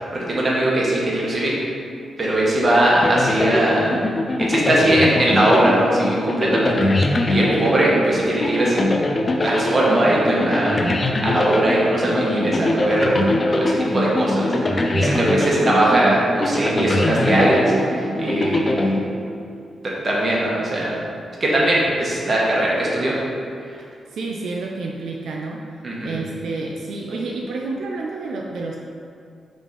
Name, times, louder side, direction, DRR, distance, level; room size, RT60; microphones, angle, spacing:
voice 1, 0.1-1.5 2.2-4.1 4.4-8.9 9.4-10.9 11.2-13.2 13.5-14.5 15.0-18.9 19.8-21.0 21.4-23.2 23.7-23.8 25.8-26.2, right 1 dB, 30° right, -5 dB, 1.2 m, -20 dB
sound 1, 3.0-19.6, left 1 dB, 25° left, 0.4 m, -22 dB
voice 2, 12.5-12.9 14.9-15.7 18.2-18.7 23.8-25.6 26.0-28.8, right 3 dB, 75° right, -1 dB, 0.5 m, -30 dB
5.1 x 3.5 x 5.3 m, 2.4 s
wide cardioid pair, 160°, 0 cm